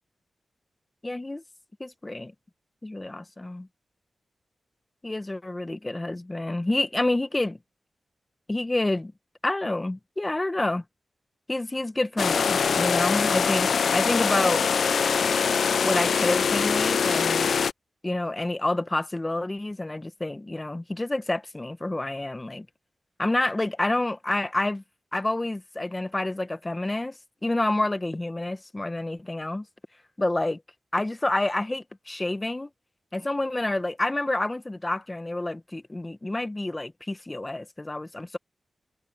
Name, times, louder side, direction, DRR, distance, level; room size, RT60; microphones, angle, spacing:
voice 1, 1.0-1.4 1.8-2.3 2.8-3.7 5.0-7.6 8.5-9.1 9.4-10.8 11.5-14.7 15.8-17.5 18.0-22.7 23.2-24.8 25.1-27.1 27.4-29.6 30.2-30.6 30.9-32.7 33.1-38.4, left 2 dB, 20° left, 1.5 m, -28 dB
sound 1, 12.2-17.7, left 6 dB, 75° left, 0.5 m, -23 dB
cardioid pair, 70°, 0 cm